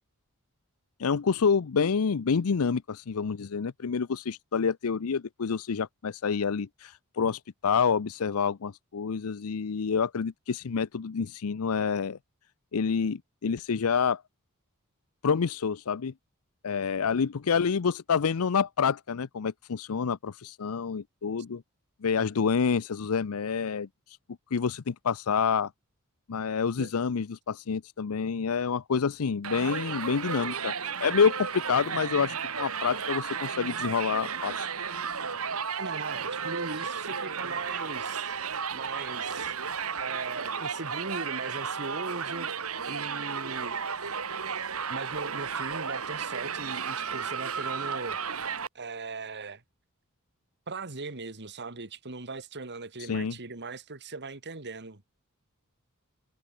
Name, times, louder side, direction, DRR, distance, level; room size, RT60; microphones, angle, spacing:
voice 1, 1.0-12.2 12.7-14.2 15.2-16.1 16.6-21.6 22.0-24.2 24.5-25.7 26.3-30.7 31.0-34.7 53.0-53.4, left 6 dB, 75° left, 0.6 m, -28 dB
Crowd, 29.4-48.7, right 6 dB, 75° right, 2.2 m, -33 dB
voice 2, 35.7-39.5 40.0-42.5 42.9-43.8 44.9-48.2 48.7-49.6 50.7-55.0, right 3 dB, 50° right, 2.2 m, -39 dB
head